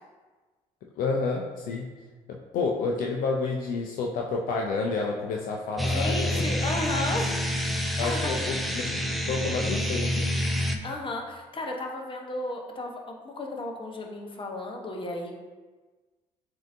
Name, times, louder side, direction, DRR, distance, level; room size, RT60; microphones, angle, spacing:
voice 1, 1.0-1.9 2.3-6.4 8.0-9.0 9.3-10.3, left 4 dB, 65° left, -1 dB, 0.5 m, -29 dB
voice 2, 5.8-7.4 8.0-8.3 10.8-15.3, left 2 dB, 35° left, 1 dB, 0.9 m, -33 dB
sound 1, 5.8-10.8, equal, ahead, 0.5 m, -28 dB
7.3 x 2.8 x 2.6 m, 1.3 s
hypercardioid pair, 55°, 16 cm